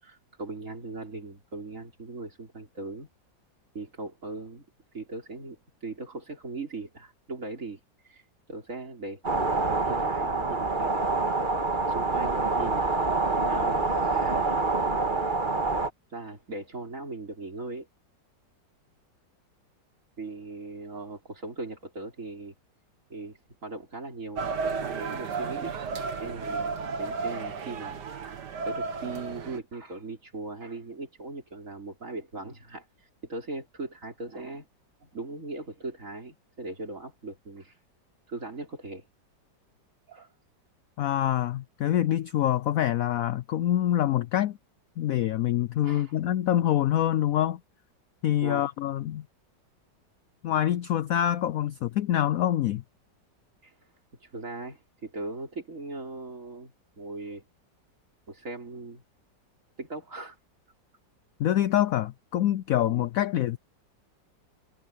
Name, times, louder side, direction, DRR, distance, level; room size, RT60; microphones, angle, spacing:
voice 1, 0.0-3.1 3.7-4.6 4.9-7.8 8.1-8.2 8.5-11.3 11.9-13.2 13.5-14.6 16.1-17.9 20.2-22.5 23.1-25.7 26.2-32.8 33.3-34.7 35.0-37.7 38.3-39.1 40.1-40.3 45.8-46.1 48.4-48.6 53.6-53.7 54.2-57.4 58.3-59.0 59.8-60.4 62.9-63.1, right 3 dB, 40° right, 4.8 m, -39 dB
sound 1, 9.2-15.9, right 3 dB, 25° right, 1.9 m, -26 dB
sound 2, 24.4-29.6, right 5 dB, 65° right, 2.0 m, -33 dB
voice 2, 41.0-44.6 45.0-47.6 48.2-49.3 50.4-52.8 61.4-63.6, left 12 dB, 90° left, 0.7 m, -25 dB
omnidirectional pair, 2.0 m